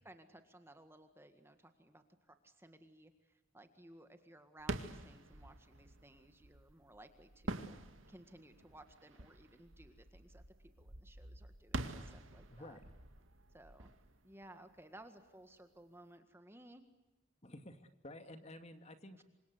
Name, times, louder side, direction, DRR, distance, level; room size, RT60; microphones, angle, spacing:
voice 1, 0.1-7.8 8.1-10.4 10.8-12.8 13.5-13.9 14.2-16.8 19.2-19.3, right 1 dB, 10° right, 7 dB, 1.7 m, -59 dB
sound 1, 4.6-15.2, right 2 dB, 75° right, 2.2 m, -47 dB
voice 2, 12.5-12.9 17.4-19.2, left 1 dB, 35° left, 7 dB, 2.3 m, -52 dB
28.0 x 26.0 x 8.0 m, 1.1 s
head